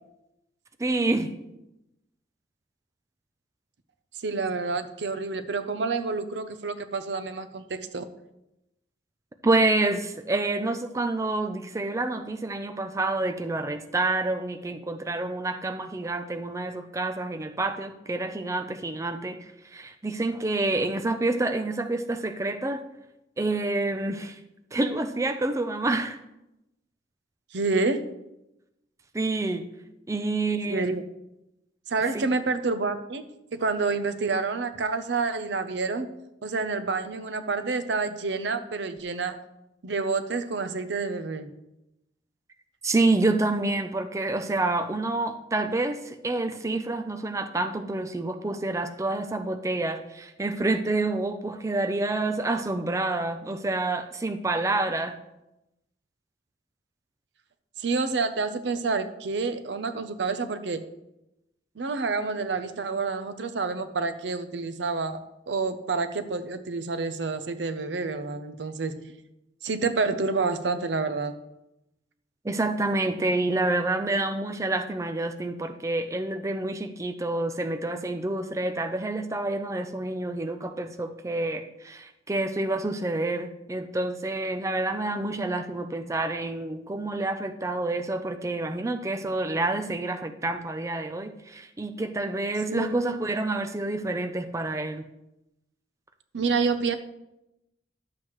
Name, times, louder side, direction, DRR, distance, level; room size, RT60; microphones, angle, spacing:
voice 1, 0.8-1.3 9.4-22.8 23.4-24.4 24.7-26.2 29.1-29.6 30.1-30.9 32.1-32.2 42.8-55.2 72.4-95.1, right 2 dB, 15° right, 7 dB, 0.4 m, -28 dB
voice 2, 4.2-8.1 27.5-28.0 30.7-31.0 31.9-36.1 36.4-39.4 39.8-41.5 57.8-60.8 61.8-65.2 65.5-69.0 69.6-71.3 92.7-93.1 96.3-97.0, right 4 dB, 80° right, 10 dB, 0.7 m, -28 dB
11.5 x 7.5 x 3.1 m, 0.90 s
head